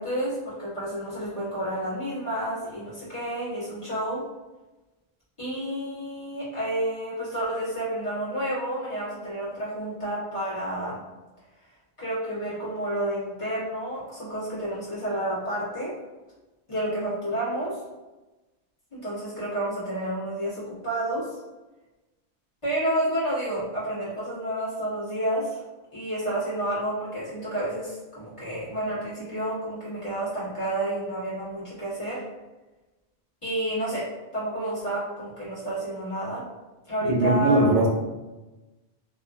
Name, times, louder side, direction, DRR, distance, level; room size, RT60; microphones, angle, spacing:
voice 1, 0.0-4.2 5.4-11.0 12.0-15.9 16.7-17.8 18.9-21.4 22.6-25.6 25.9-32.2 33.4-34.0 34.3-36.4 36.9-37.7, right 1 dB, 30° left, -10 dB, 1.4 m, -30 dB
voice 2, 37.0-37.9, right 2 dB, 65° right, 0 dB, 0.8 m, -20 dB
2.8 x 2.5 x 2.5 m, 1.1 s
omnidirectional pair, 1.1 m